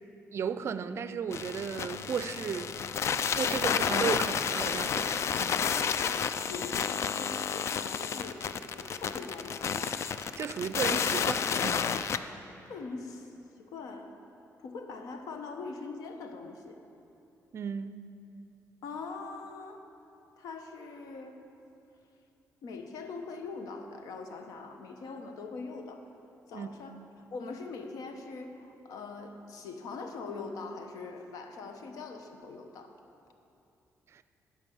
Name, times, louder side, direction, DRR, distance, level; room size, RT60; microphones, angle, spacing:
voice 1, 0.3-2.7 3.3-5.6 10.4-11.9 17.5-17.9 26.5-26.7 34.1-34.2, right 7 dB, 50° right, 12 dB, 0.5 m, -34 dB
sound 1, 1.3-12.2, left 7 dB, 50° left, 0.4 m, -31 dB
voice 2, 6.5-10.1 12.6-13.3 13.6-14.1 14.6-16.8 18.8-19.9 20.4-21.4 22.6-26.1 26.5-27.0 27.3-32.9, left 4 dB, 85° left, 5 dB, 1.0 m, -42 dB
15.0 x 5.3 x 7.1 m, 2.8 s
cardioid pair, 130°, 6 cm